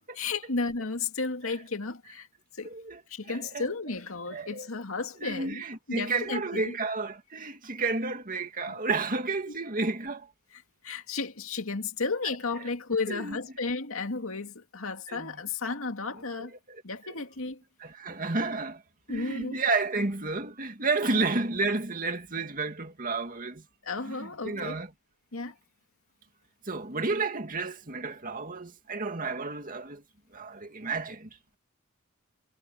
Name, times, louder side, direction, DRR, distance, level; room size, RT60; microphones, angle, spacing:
voice 1, 0.1-2.3 2.5-2.7 3.1-5.6 5.9-6.7 8.7-8.8 9.5-9.6 10.8-16.5 16.8-17.6 19.1-19.6 21.0-21.2 23.8-24.8 25.3-25.5, left 4 dB, 70° left, 2.2 m, -33 dB
voice 2, 2.6-3.0 3.3-3.7 4.3-4.7 5.2-10.3 13.1-13.4 15.1-15.4 16.4-17.1 17.8-18.8 19.1-23.6 24.0-24.9 26.6-30.0 30.3-31.3, right 3 dB, 40° right, 2.3 m, -31 dB
head